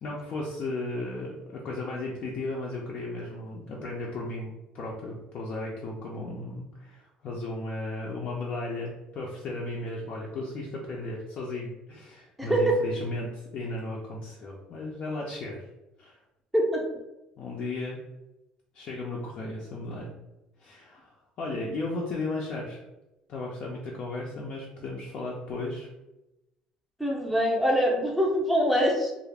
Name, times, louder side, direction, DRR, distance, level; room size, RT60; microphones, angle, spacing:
voice 1, 0.0-15.6 16.0-16.2 17.4-18.0 18.7-20.1 20.6-22.8 23.3-25.9, left 2 dB, 50° left, -3 dB, 0.4 m, -35 dB
voice 2, 12.4-12.8 16.5-17.0 27.0-29.1, equal, ahead, -2 dB, 0.5 m, -24 dB
2.4 x 2.0 x 3.2 m, 0.95 s
cardioid pair, 135°, 3 cm